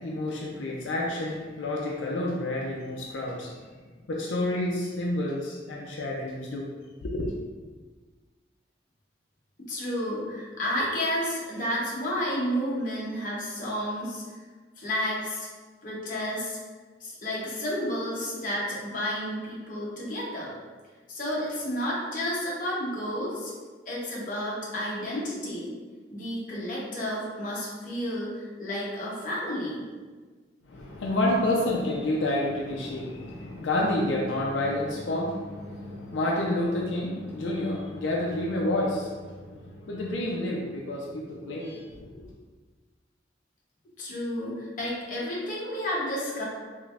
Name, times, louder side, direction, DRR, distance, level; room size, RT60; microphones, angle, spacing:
voice 1, 0.0-3.6 4.1-6.7 7.0-7.3 30.7-42.3, left 1 dB, 90° left, -2 dB, 0.4 m, -29 dB
voice 2, 9.7-14.2 14.8-15.5 15.8-16.6 17.0-20.5 21.1-23.5 23.8-25.7 26.1-29.9 44.0-46.4, equal, 45° left, -5 dB, 0.8 m, -31 dB
3.3 x 3.0 x 2.4 m, 1.4 s
head